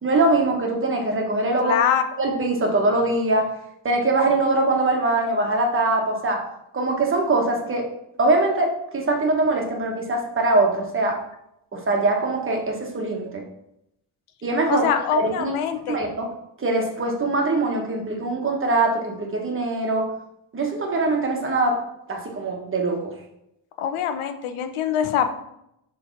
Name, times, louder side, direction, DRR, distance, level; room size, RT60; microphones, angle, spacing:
voice 1, 0.0-1.8 2.2-3.5 3.8-6.4 6.7-7.8 8.2-11.2 11.7-13.4 14.4-14.9 15.1-15.6 15.9-16.3 16.6-20.1 20.5-21.8 22.1-23.1, right 2 dB, 25° right, 1 dB, 1.1 m, -22 dB
voice 2, 1.6-2.0 14.7-16.0 23.8-25.3, left 9 dB, 85° left, 8 dB, 0.9 m, -24 dB
6.9 x 3.4 x 5.7 m, 0.81 s
cardioid pair, 170°, 49 cm